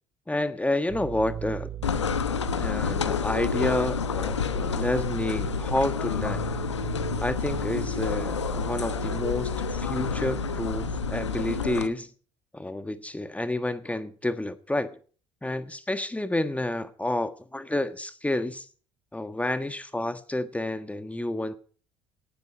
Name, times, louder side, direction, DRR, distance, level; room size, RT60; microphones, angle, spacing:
voice 1, 0.3-1.7 2.6-6.5 7.2-12.1 12.5-15.0 15.4-18.7 19.1-21.6, left 1 dB, 10° left, 1.5 m, -29 dB
sound 1, 0.9-11.7, right 10 dB, 30° right, 2.7 m, -37 dB
sound 2, 1.8-11.9, left 7 dB, 90° left, 1.1 m, -29 dB
18.5 x 13.0 x 4.5 m
hypercardioid pair, 60°, 14 cm